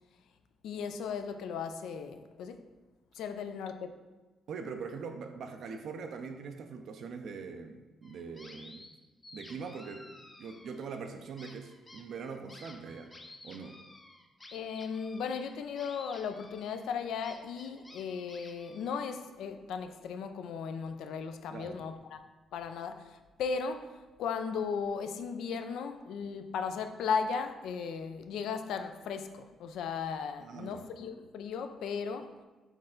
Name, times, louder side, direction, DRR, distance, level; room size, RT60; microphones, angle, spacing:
voice 1, 0.6-2.6 3.1-4.0 14.5-22.2 22.5-32.4, left 6 dB, 80° left, 0.3 m, -36 dB
voice 2, 4.5-8.9 9.3-10.1 10.4-13.1 13.4-13.8 21.5-21.8 30.4-30.8, right 5 dB, 70° right, 0.4 m, -42 dB
sound 1, 8.0-8.9 9.2-11.0 11.4-19.2, left 2 dB, 25° left, 0.5 m, -53 dB
4.4 x 3.2 x 3.7 m
cardioid pair, 90°, 0 cm